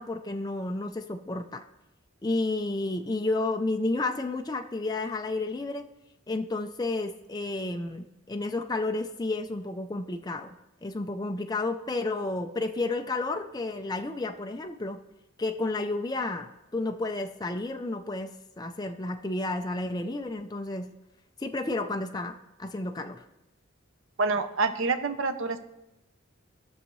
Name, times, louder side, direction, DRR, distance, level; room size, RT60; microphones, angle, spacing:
voice 1, 0.0-1.6 2.2-5.9 6.3-10.6 10.8-15.0 15.4-20.9 21.4-23.2, left 2 dB, 20° left, 4 dB, 0.5 m, -31 dB
voice 2, 24.2-25.6, right 4 dB, 75° right, 9 dB, 0.7 m, -27 dB
19.0 x 6.5 x 3.1 m, 0.94 s
head